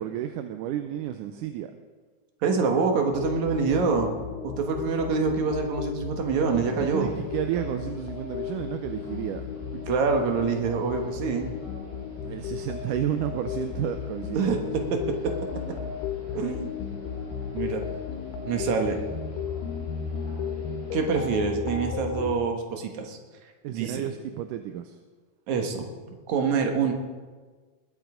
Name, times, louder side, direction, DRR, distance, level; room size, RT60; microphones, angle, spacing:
voice 1, 0.0-1.7 6.8-9.4 12.2-14.6 23.6-25.0, right 11 dB, 80° right, 8 dB, 2.2 m, -31 dB
voice 2, 2.4-4.1 4.4-7.1 9.9-11.6 14.3-15.3 16.3-16.7 17.5-17.8 18.4-19.0 20.9-23.2 23.7-24.0 25.5-26.9, right 5 dB, 65° right, 4 dB, 2.7 m, -26 dB
sound 1, 3.1-22.4, left 7 dB, 85° left, 2.7 m, -35 dB
sound 2, 6.5-21.4, right 2 dB, 45° right, 5.2 m, -48 dB
20.5 x 9.1 x 5.0 m, 1.4 s
omnidirectional pair, 3.7 m